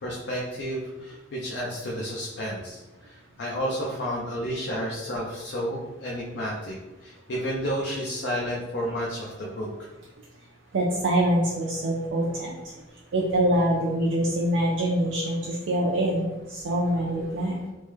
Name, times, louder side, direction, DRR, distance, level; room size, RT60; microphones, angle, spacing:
voice 1, 0.0-9.9, equal, 60° left, -3 dB, 0.4 m, -31 dB
voice 2, 10.7-12.6 13.1-16.2 16.5-17.6, right 1 dB, 75° right, -3 dB, 0.4 m, -24 dB
3.1 x 2.1 x 3.3 m, 1.1 s
head